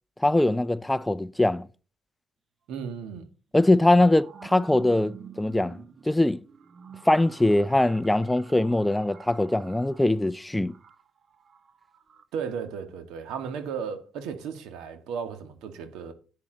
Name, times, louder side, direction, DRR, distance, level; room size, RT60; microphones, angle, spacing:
voice 1, 0.2-1.7 3.5-6.4 7.1-10.7, left 1 dB, 10° left, 0.4 m, -22 dB
voice 2, 2.7-3.3 12.3-16.1, right 6 dB, 85° right, 1.7 m, -35 dB
sound 1, 4.1-12.2, right 7 dB, 45° right, 0.9 m, -48 dB
10.5 x 8.5 x 3.9 m
cardioid pair, 95°, 0 cm